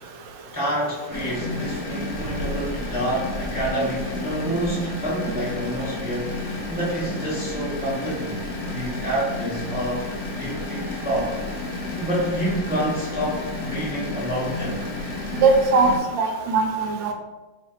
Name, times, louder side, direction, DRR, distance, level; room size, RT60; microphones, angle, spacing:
voice 1, 0.5-8.4 8.7-10.0 10.4-11.4 11.9-14.8, right 1 dB, 15° right, -7 dB, 0.3 m, -28 dB
sound 1, 1.1-16.0, left 2 dB, 75° left, 0.7 m, -31 dB
voice 2, 15.4-17.1, right 4 dB, 80° right, 4 dB, 1.2 m, -20 dB
3.1 x 2.5 x 4.2 m, 1.2 s
omnidirectional pair, 2.1 m